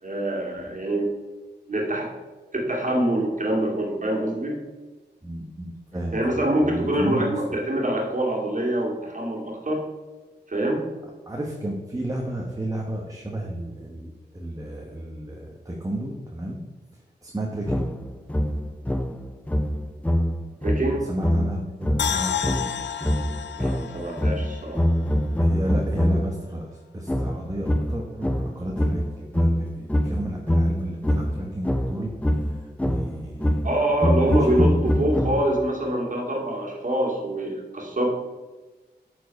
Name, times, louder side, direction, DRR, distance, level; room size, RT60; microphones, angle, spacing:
voice 1, 0.0-1.1 1.7-2.1 2.5-4.6 6.1-9.8 10.5-10.9 20.6-21.1 23.6-24.8 33.6-38.1, right 1 dB, 45° right, -1 dB, 2.2 m, -25 dB
voice 2, 5.2-7.3 11.3-16.6 17.2-17.9 21.0-22.7 25.4-32.1 32.6-33.7 34.1-34.7, right 1 dB, 20° right, 0 dB, 1.2 m, -32 dB
sound 1, 17.7-26.4 27.1-35.7, equal, 5° left, 0.5 m, -25 dB
sound 2, 22.0-25.2 25.5-25.6, left 8 dB, 85° left, 0.5 m, -31 dB
9.2 x 4.7 x 5.2 m, 1.2 s
wide cardioid pair, 80°, 18 cm